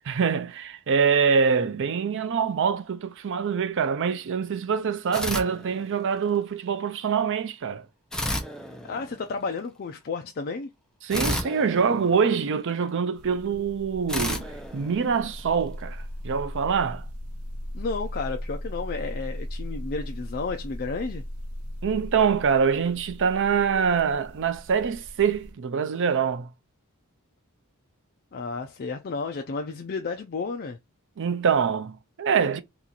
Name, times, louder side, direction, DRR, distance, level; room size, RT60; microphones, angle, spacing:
voice 1, 0.1-7.9 11.0-17.0 21.8-26.5 31.2-32.6, right 6 dB, 60° right, 0.5 m, -25 dB
sound 1, 5.1-6.3 8.1-9.5 11.1-12.8 14.1-15.6, left 1 dB, 5° left, 0.6 m, -32 dB
voice 2, 8.8-10.7 17.7-21.2 28.3-30.8, left 4 dB, 45° left, 0.4 m, -32 dB
sound 2, 13.2-25.5, equal, 90° right, 0.8 m, -38 dB
2.9 x 2.5 x 3.8 m
head